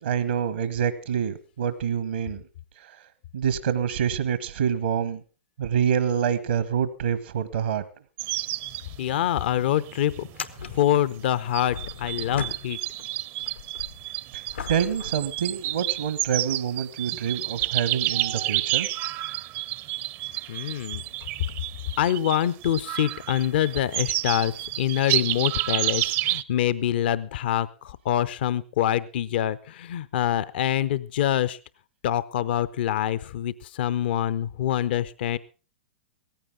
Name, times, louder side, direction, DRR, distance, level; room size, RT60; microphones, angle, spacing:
voice 1, 0.0-2.4 2.8-3.0 3.3-5.2 5.6-7.8 14.3-14.4 14.7-18.9, right 8 dB, 75° right, 13 dB, 1.2 m, -26 dB
Farmyard Ambience Revisited, 8.2-26.4, right 16 dB, 40° right, 0.6 m, -30 dB
sound 1, 8.9-9.0 9.3-9.4 10.2-13.1 13.4-16.1 16.8-16.9 21.0-21.1 22.5-22.6, left 6 dB, 80° left, 1.1 m, -39 dB
voice 2, 9.0-10.3 10.7-12.8 20.5-21.0 22.0-31.6 32.0-35.4, left 11 dB, 60° left, 16 dB, 0.7 m, -25 dB
17.5 x 15.0 x 3.7 m, 0.35 s
hypercardioid pair, 105°, 6 cm